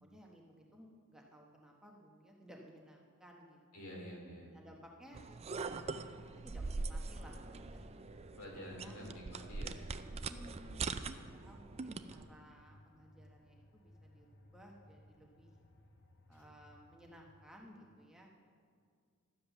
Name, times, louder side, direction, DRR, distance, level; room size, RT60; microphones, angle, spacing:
voice 1, 0.0-3.6 4.5-6.1 6.4-9.2 10.1-10.9 11.2-15.5 16.3-18.3, equal, 5° right, -1 dB, 1.1 m, -58 dB
voice 2, 3.7-4.5 8.4-9.8 16.3-16.4, equal, 80° left, -2 dB, 3.2 m, -48 dB
sound 1, 5.1-12.2, right 4 dB, 30° right, 0.4 m, -42 dB
sound 2, 6.9-17.7, left 1 dB, 50° left, 0.9 m, -62 dB
12.0 x 7.8 x 6.9 m, 2.1 s
head